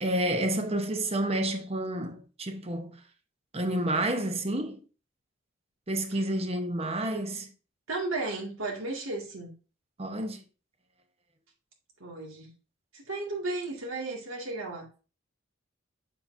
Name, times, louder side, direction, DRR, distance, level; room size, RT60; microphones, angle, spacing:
voice 1, 0.0-2.9 3.5-4.8 5.9-7.5 10.0-10.4, right 1 dB, 30° right, 0.9 m, -29 dB
voice 2, 7.9-9.5 12.0-12.5 12.9-14.9, right 2 dB, 80° right, 2.2 m, -34 dB
7.1 x 6.7 x 2.7 m
head